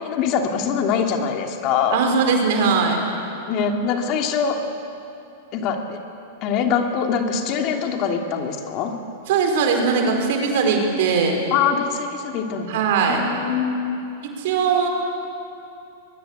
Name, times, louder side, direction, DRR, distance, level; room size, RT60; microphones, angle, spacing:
voice 1, 0.0-2.0 3.5-4.6 5.5-6.0 6.4-8.9 11.5-12.8 13.1-14.0, left 6 dB, 45° left, 3 dB, 2.9 m, -23 dB
voice 2, 1.9-3.0 9.3-11.4 12.7-13.2 14.2-14.9, right 5 dB, 60° right, 3 dB, 4.8 m, -20 dB
22.5 x 22.0 x 8.2 m, 2.7 s
hypercardioid pair, 105°, 0 cm